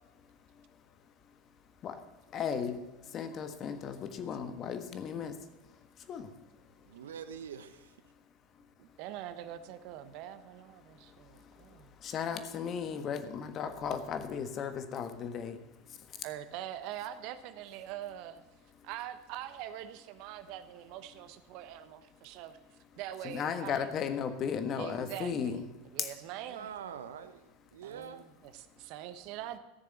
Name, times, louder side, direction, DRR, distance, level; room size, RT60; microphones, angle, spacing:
voice 1, 0.2-1.4 1.7-7.1 8.0-8.1 8.6-9.0 10.8-16.2 18.8-18.9 23.2-25.6 26.0-26.1 28.5-28.6, left 7 dB, 40° left, 9 dB, 1.4 m, -37 dB
voice 2, 6.9-7.9 26.5-27.4 27.7-28.3, right 7 dB, 85° right, 11 dB, 0.9 m, -44 dB
voice 3, 8.8-11.9 16.2-18.4 18.8-22.6 23.0-23.9 24.7-25.5 25.9-26.7 27.8-29.6, right 12 dB, 60° right, 12 dB, 1.0 m, -43 dB
13.5 x 6.9 x 8.1 m, 1.1 s
hypercardioid pair, 90°, 0 cm